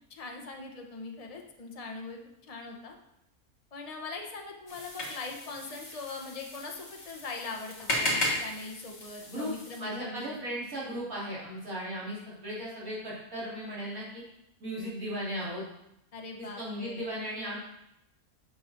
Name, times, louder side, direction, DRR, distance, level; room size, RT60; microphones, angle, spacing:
voice 1, 0.1-3.0 3.7-10.4 16.1-17.1, left 3 dB, 30° left, 2 dB, 1.0 m, -41 dB
sound 1, 4.7-9.8, left 1 dB, 50° left, 2.6 m, -35 dB
voice 2, 9.8-14.2 14.6-15.6 16.4-17.6, equal, 85° right, -7 dB, 3.8 m, -36 dB
8.4 x 6.6 x 4.4 m, 0.83 s
omnidirectional pair, 1.5 m